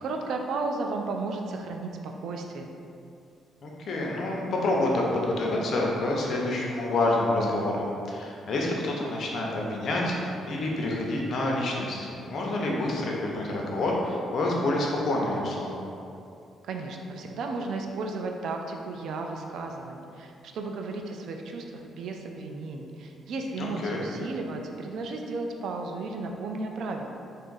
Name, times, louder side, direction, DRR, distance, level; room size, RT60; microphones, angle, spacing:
voice 1, 0.0-2.7 16.6-27.1, right 3 dB, 75° right, 3 dB, 0.3 m, -34 dB
voice 2, 3.6-15.7 23.6-24.0, left 2 dB, 60° left, -2 dB, 0.6 m, -28 dB
2.6 x 2.4 x 3.8 m, 2.6 s
cardioid pair, 90°, 0 cm